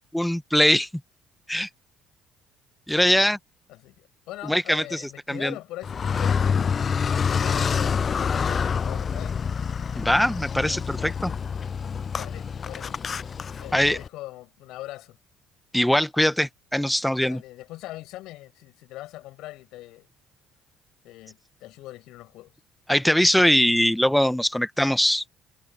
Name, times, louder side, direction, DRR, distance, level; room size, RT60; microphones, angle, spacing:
voice 1, 0.1-0.9 1.5-1.7 2.9-3.4 4.5-5.0 5.3-5.5 9.9-11.3 13.7-14.0 15.7-17.4 22.9-25.2, equal, 5° left, 1.9 m, -21 dB
voice 2, 2.9-3.3 3.7-6.6 7.1-9.4 12.2-13.0 13.6-15.2 17.3-20.1 21.0-22.5, left 17 dB, 65° left, 7.8 m, -41 dB
Car, 5.8-14.1, left 6 dB, 40° left, 0.6 m, -27 dB
figure-of-eight pair, 50°, 0 cm